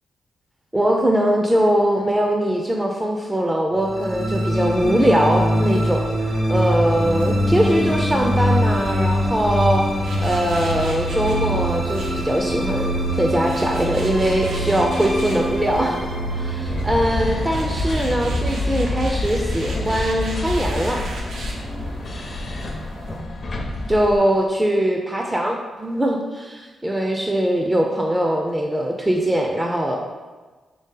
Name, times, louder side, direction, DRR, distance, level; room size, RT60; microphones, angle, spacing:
voice 1, 0.7-6.1 6.5-9.9 10.2-21.1 23.9-30.0, right 1 dB, 15° right, 1 dB, 0.4 m, -21 dB
sound 1, 3.8-18.2, equal, 60° right, 1.2 m, -23 dB
sound 2, 6.9-23.2, right 1 dB, 90° right, 0.6 m, -37 dB
sound 3, 16.7-24.2, left 1 dB, 50° left, 0.5 m, -27 dB
3.2 x 2.7 x 3.7 m, 1.3 s
cardioid pair, 65°, 0 cm